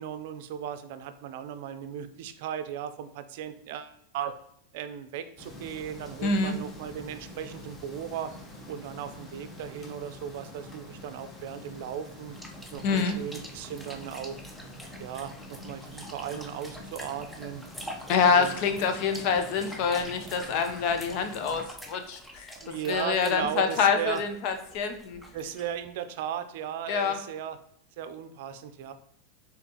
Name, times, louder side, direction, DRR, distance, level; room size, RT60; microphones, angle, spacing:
voice 1, 0.0-4.3 4.7-8.3 8.7-12.4 12.7-14.4 15.0-17.6 18.3-18.6 22.6-24.2 25.3-27.6 28.0-28.9, right 9 dB, 65° right, 10 dB, 0.5 m, -36 dB
sound 1, 5.4-21.7, left 1 dB, 20° left, 1.0 m, -46 dB
voice 2, 6.2-6.5 12.8-13.2 18.1-22.5 22.9-25.2 26.9-27.2, left 5 dB, 55° left, 7 dB, 0.6 m, -26 dB
sound 2, 12.3-25.9, equal, ahead, 0.6 m, -46 dB
4.3 x 3.7 x 2.9 m, 0.69 s
supercardioid pair, 130°, 0 cm